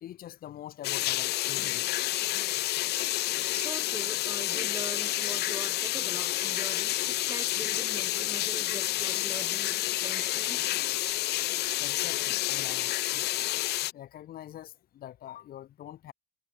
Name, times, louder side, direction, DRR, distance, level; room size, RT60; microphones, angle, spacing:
voice 1, 0.0-2.6 3.9-4.0 11.5-13.5 13.9-16.1, left 12 dB, 60° left, 1.9 m, -45 dB
sound 1, 0.8-13.9, left 16 dB, 75° left, 1.6 m, -29 dB
voice 2, 3.5-10.8, right 3 dB, 15° right, 2.2 m, -43 dB
cardioid pair, 110°, 17 cm